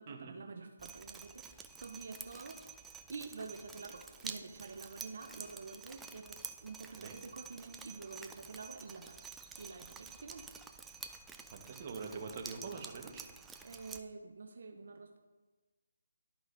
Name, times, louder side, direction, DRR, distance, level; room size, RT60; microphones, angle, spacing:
voice 1, 0.0-2.6 3.1-9.2 9.6-10.4 13.6-15.2, right 4 dB, 60° right, 5 dB, 0.7 m, -48 dB
Drip, 0.8-14.0, right 5 dB, 5° right, 0.3 m, -50 dB
voice 2, 6.9-7.2 11.5-13.2, right 4 dB, 35° right, 2 dB, 1.2 m, -44 dB
13.0 x 5.0 x 2.6 m, 1.2 s
figure-of-eight pair, 160°, 0 cm